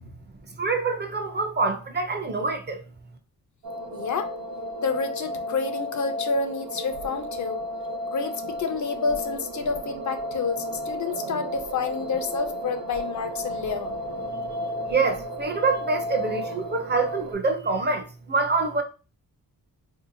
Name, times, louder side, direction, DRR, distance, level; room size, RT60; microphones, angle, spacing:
voice 1, 0.6-2.8 14.6-18.8, right 4 dB, 30° right, 0.5 m, -26 dB
sound 1, 3.6-17.3, equal, 75° right, 0.8 m, -33 dB
voice 2, 3.9-4.3 4.8-7.6 8.1-14.0, left 5 dB, 55° left, 0.5 m, -29 dB
3.3 x 2.7 x 2.6 m
wide cardioid pair, 115°, 35 cm